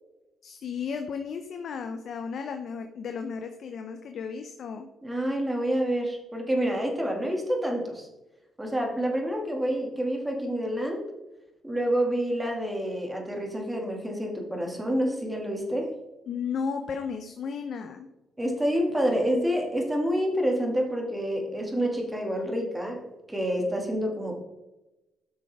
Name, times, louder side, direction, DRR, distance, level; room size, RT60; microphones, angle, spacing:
voice 1, 0.4-4.9 16.3-18.1, left 6 dB, 60° left, 6 dB, 0.7 m, -34 dB
voice 2, 5.0-8.1 8.6-11.0 11.6-15.9 18.4-23.0 23.3-24.4, equal, 15° right, 1 dB, 2.1 m, -28 dB
9.5 x 6.3 x 3.5 m, 0.99 s
cardioid pair, 90°, 0 cm